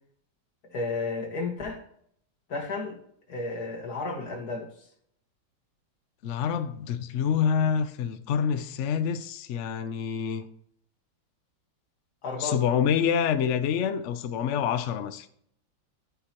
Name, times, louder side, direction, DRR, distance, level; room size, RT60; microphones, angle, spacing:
voice 1, 0.7-1.8 2.5-3.0 3.3-4.7 12.2-12.6, left 3 dB, 55° left, 2.1 m, -32 dB
voice 2, 6.2-10.4 12.4-15.3, left 7 dB, 85° left, 0.6 m, -27 dB
13.0 x 6.0 x 2.9 m
omnidirectional pair, 2.0 m